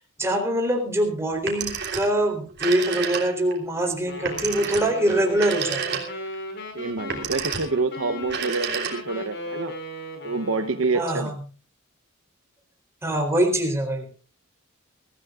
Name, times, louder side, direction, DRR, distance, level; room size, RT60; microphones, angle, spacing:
voice 1, 0.2-6.0 10.9-11.3 13.0-14.1, right 1 dB, 15° right, 3 dB, 3.8 m, -24 dB
Telephone, 1.3-2.2 2.5-3.6 4.2-6.3 7.0-7.8 8.2-9.3, right 6 dB, 55° right, 3.2 m, -30 dB
Wind instrument woodwind instrument, 4.1-11.0, equal, 55° left, 5.4 m, -37 dB
voice 2, 6.7-9.7 10.2-11.3, right 3 dB, 70° right, 9 dB, 0.9 m, -27 dB
23.5 x 15.0 x 2.5 m, 0.35 s
head